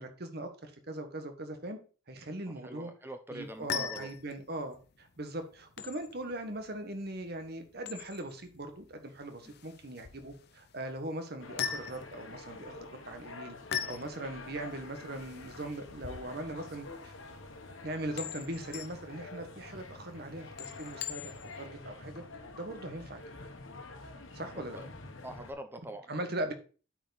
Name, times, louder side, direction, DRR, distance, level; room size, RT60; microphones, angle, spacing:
voice 1, 0.0-1.8 2.1-2.9 3.3-17.1 17.8-21.3 21.6-22.2 22.5-23.2 24.3-24.8 26.1-26.5, right 1 dB, 50° right, 7 dB, 1.3 m, -40 dB
voice 2, 2.6-4.1 24.1-24.2 24.5-24.9 25.2-26.1, right 1 dB, 10° right, 7 dB, 0.7 m, -44 dB
sound 1, 3.4-21.7, left 8 dB, 50° left, 0.6 m, -43 dB
sound 2, 11.4-25.5, left 3 dB, 70° left, 1.2 m, -48 dB
8.8 x 4.7 x 4.1 m, 0.36 s
head